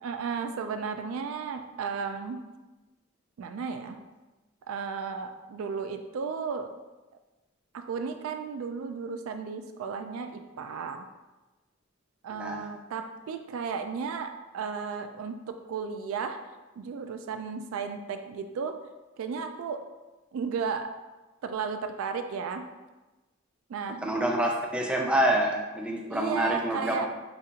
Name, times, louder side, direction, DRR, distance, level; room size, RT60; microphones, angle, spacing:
voice 1, 0.0-2.4 3.4-4.0 4.7-6.7 7.7-11.1 12.2-15.4 15.7-16.4 16.8-18.7 19.2-19.8 20.3-20.9 21.4-22.6 23.7-24.1 26.1-27.1, right 6 dB, 85° right, 7 dB, 0.3 m, -34 dB
voice 2, 12.4-12.7 24.0-27.1, right 1 dB, 5° right, -1 dB, 0.4 m, -27 dB
5.0 x 2.4 x 2.8 m, 1.1 s
head